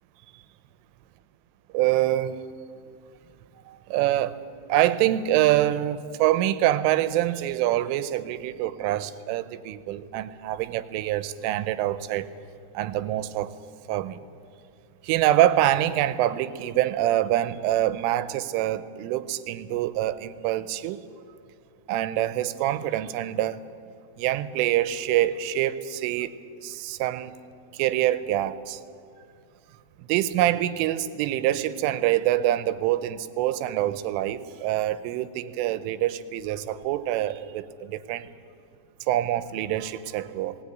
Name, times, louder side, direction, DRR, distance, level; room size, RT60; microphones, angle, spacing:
voice 1, 1.7-2.4 3.7-4.4 4.7-12.3 12.7-13.5 13.9-14.2 15.0-21.0 21.9-23.6 24.2-26.3 26.6-27.3 27.7-28.8 30.0-38.3 39.1-40.6, right 13 dB, 85° right, 14 dB, 3.3 m, -25 dB
19.5 x 18.5 x 9.1 m, 2.4 s
omnidirectional pair, 5.6 m